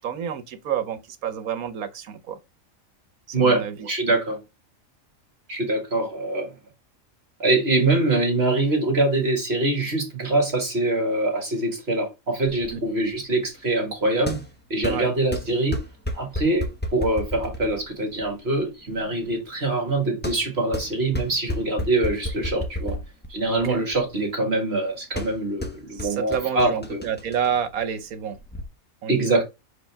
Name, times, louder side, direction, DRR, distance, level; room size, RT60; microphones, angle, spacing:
voice 1, 0.0-2.4 3.3-3.9 12.7-12.8 14.9-15.1 23.5-23.8 25.9-28.4 29.0-29.4, right 8 dB, 80° right, 1.4 m, -29 dB
voice 2, 3.3-4.4 5.5-6.5 7.4-14.4 14.7-15.8 16.1-23.0 23.3-27.0 29.1-29.4, right 2 dB, 45° right, 1.8 m, -24 dB
sound 1, 12.5-28.6, left 1 dB, 10° left, 0.9 m, -34 dB
5.8 x 5.0 x 3.4 m
omnidirectional pair, 1.5 m